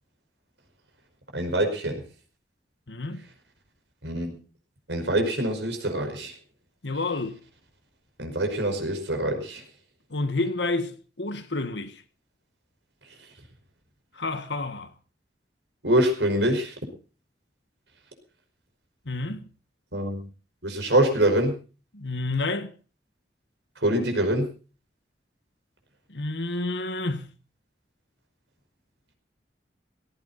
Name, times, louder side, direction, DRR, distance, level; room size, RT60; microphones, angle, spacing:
voice 1, 1.3-2.0 4.0-4.3 4.9-6.3 8.2-9.6 15.8-16.7 19.9-20.2 20.6-21.5 23.8-24.5, right 1 dB, 80° right, 5.4 m, -24 dB
voice 2, 2.9-3.2 6.8-7.4 10.1-10.9 11.2-12.0 14.1-14.9 19.1-19.5 21.9-22.7 26.1-27.3, left 2 dB, 80° left, 1.8 m, -29 dB
18.0 x 15.0 x 4.2 m
head